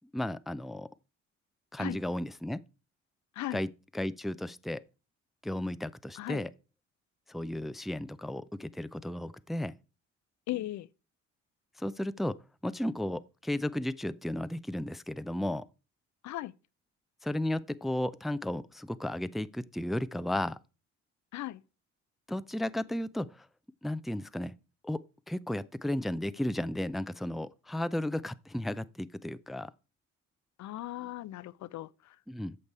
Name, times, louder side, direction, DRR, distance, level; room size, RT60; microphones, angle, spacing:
voice 1, 0.1-0.9 1.7-2.6 3.5-3.7 3.9-4.8 5.4-6.5 7.3-9.7 11.8-12.4 12.6-15.7 17.2-20.6 22.3-23.5 23.8-24.5 24.8-29.7 32.3-32.6, left 1 dB, ahead, 0.5 m, -34 dB
voice 2, 10.5-10.9 16.2-16.5 21.3-21.6 30.6-32.2, left 15 dB, 60° left, 0.5 m, -37 dB
8.5 x 6.6 x 4.6 m
hypercardioid pair, 50°, 33 cm